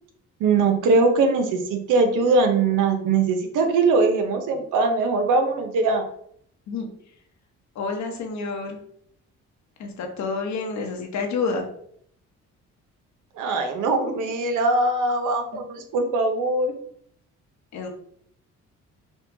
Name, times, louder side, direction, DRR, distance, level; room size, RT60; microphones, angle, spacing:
voice 1, 0.4-6.1 13.3-16.7, right 3 dB, 85° right, 6 dB, 0.9 m, -21 dB
voice 2, 7.7-8.8 9.8-11.7 15.5-15.6 17.7-17.9, left 4 dB, 65° left, 2 dB, 1.1 m, -29 dB
5.3 x 2.3 x 3.8 m, 0.66 s
cardioid pair, 90°, 30 cm